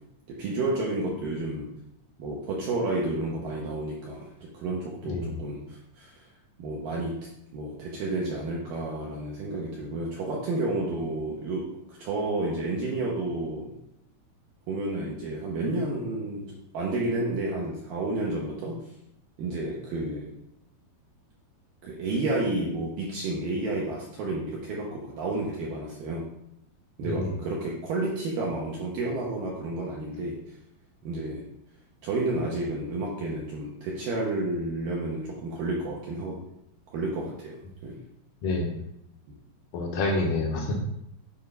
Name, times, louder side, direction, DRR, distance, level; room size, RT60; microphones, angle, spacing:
voice 1, 0.4-1.7 2.2-6.3 6.6-7.2 7.5-13.8 14.7-18.8 19.4-20.3 21.8-26.3 27.0-30.6 31.0-31.5 32.0-36.4 36.9-37.6 37.8-38.0, right 2 dB, 70° right, -3 dB, 2.2 m, -31 dB
voice 2, 5.0-5.4 27.0-27.3 38.4-38.8 39.7-40.8, left 2 dB, 80° left, -1 dB, 1.9 m, -28 dB
9.2 x 3.7 x 5.4 m, 0.80 s
omnidirectional pair, 5.2 m